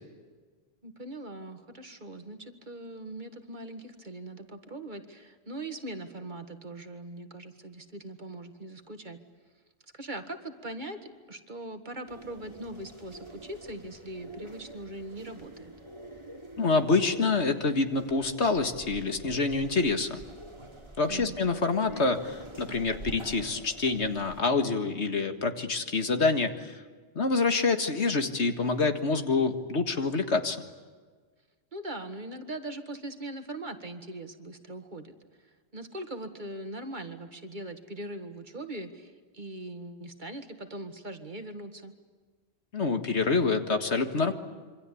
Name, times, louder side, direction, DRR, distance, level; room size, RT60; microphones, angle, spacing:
voice 1, 0.8-9.2 9.9-11.0 11.3-15.7 21.1-21.4 31.7-35.2 35.4-41.9, right 1 dB, 45° right, 7 dB, 2.1 m, -41 dB
sound 1, 12.1-24.4, right 1 dB, 25° right, 2.8 m, -46 dB
voice 2, 16.6-20.2 21.0-26.8 27.2-30.6 42.7-44.3, left 3 dB, 75° left, 7 dB, 2.1 m, -27 dB
27.0 x 24.5 x 8.6 m, 1.4 s
omnidirectional pair, 1.1 m